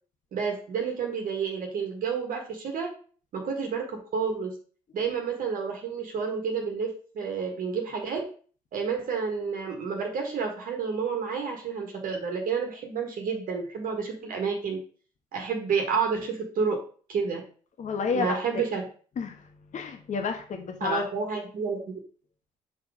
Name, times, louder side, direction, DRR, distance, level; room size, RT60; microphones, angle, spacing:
voice 1, 0.3-2.9 3.3-4.5 4.9-8.3 8.7-14.8 15.3-16.8 17.1-17.4 18.1-18.8 20.8-21.8, right 5 dB, 60° right, 2 dB, 1.5 m, -30 dB
voice 2, 17.8-18.4 19.2-19.4 19.7-21.0, left 5 dB, 50° left, 5 dB, 1.2 m, -30 dB
5.1 x 4.0 x 4.9 m, 0.42 s
hypercardioid pair, 55°, 16 cm